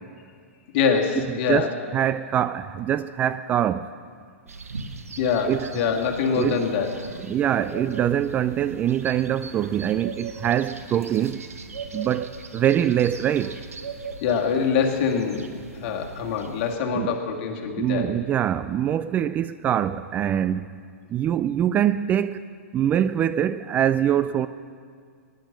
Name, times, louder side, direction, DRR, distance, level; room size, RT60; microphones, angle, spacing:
voice 1, 0.7-1.7 5.2-6.9 14.2-15.5 15.7-18.1, left 6 dB, 45° left, 2.1 m, -24 dB
voice 2, 1.5-3.9 5.5-5.7 6.4-6.7 7.3-11.4 11.9-13.6 17.0-17.1 17.8-20.7 21.1-22.5 22.7-24.5, right 10 dB, 20° right, 0.3 m, -24 dB
sound 1, 4.5-16.8, right 4 dB, 85° right, 1.1 m, -39 dB
18.5 x 10.5 x 6.6 m
hypercardioid pair, 115°, 8 cm